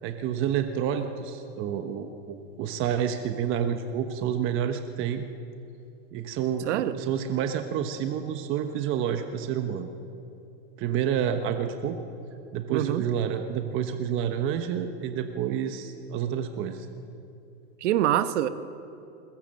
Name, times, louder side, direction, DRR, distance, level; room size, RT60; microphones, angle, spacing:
voice 1, 0.0-5.2 6.1-9.9 10.8-12.0 12.5-16.9, right 8 dB, 35° right, 7 dB, 1.1 m, -29 dB
voice 2, 12.7-13.0 17.8-18.5, right 12 dB, 70° right, 11 dB, 1.4 m, -24 dB
21.5 x 19.5 x 7.7 m, 2.8 s
supercardioid pair, 150°, 37 cm